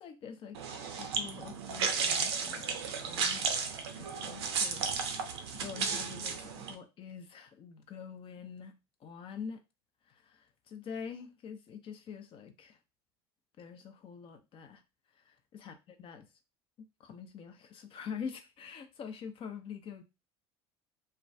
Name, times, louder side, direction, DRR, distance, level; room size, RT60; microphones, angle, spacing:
voice 1, 0.0-3.6 4.0-9.6 10.2-12.8 13.6-14.8 15.3-15.7 16.0-16.2 16.8-20.0, left 6 dB, 40° left, 0.5 m, -45 dB
sound 1, 0.5-6.7, right 5 dB, 80° right, 0.4 m, -34 dB
2.2 x 2.2 x 2.6 m
hypercardioid pair, 75°, 13 cm